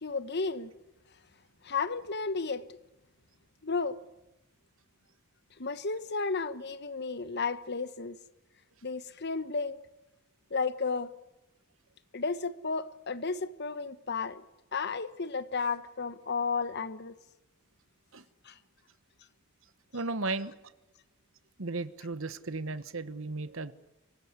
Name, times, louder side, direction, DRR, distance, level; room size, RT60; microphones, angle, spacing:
voice 1, 0.0-0.7 1.6-2.6 3.6-4.0 5.6-8.2 8.8-9.8 10.5-11.1 12.1-14.4 14.7-17.2 18.4-18.5, left 4 dB, 50° left, 1.2 m, -33 dB
voice 2, 19.9-20.6 21.6-23.7, right 3 dB, 65° right, 1.2 m, -35 dB
25.0 x 20.0 x 9.6 m
head